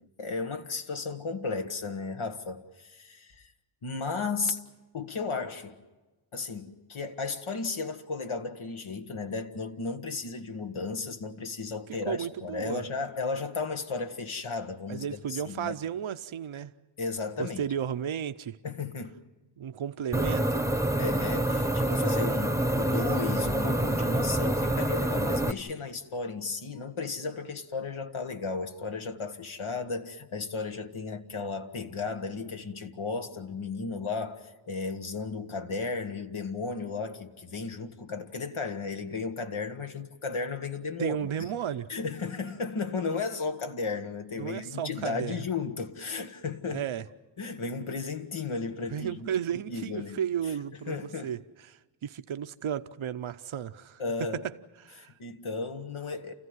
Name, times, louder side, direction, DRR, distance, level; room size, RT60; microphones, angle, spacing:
voice 1, 0.2-3.5 3.8-4.6 4.9-5.8 6.3-15.7 17.0-17.7 18.6-19.1 21.0-41.5 41.9-46.8 47.4-50.2 50.9-51.4 54.0-54.5 55.2-56.3, left 4 dB, 85° left, 1.4 m, -34 dB
voice 2, 12.1-12.8 14.9-16.7 17.4-18.6 19.6-20.7 41.0-41.9 44.4-45.4 46.7-47.1 48.9-54.0 54.3-55.1, right 9 dB, 80° right, 0.7 m, -34 dB
sound 1, 20.1-25.5, right 1 dB, 5° right, 0.9 m, -27 dB
29.0 x 15.0 x 9.6 m
wide cardioid pair, 50°, 47 cm